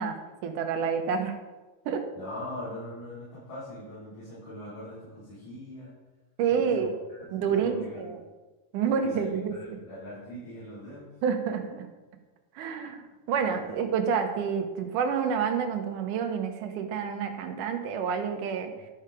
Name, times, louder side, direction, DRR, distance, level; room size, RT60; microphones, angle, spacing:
voice 1, 0.0-1.4 1.9-2.0 6.4-6.9 7.3-8.2 8.7-9.8 11.2-11.9 12.6-18.7, right 6 dB, 75° right, 5 dB, 2.5 m, -28 dB
voice 2, 2.1-5.9 6.5-6.9 7.4-8.1 8.9-11.1 13.4-13.8 18.8-18.9, left 1 dB, 70° left, -12 dB, 5.5 m, -41 dB
12.0 x 6.2 x 4.9 m, 1.2 s
omnidirectional pair, 3.8 m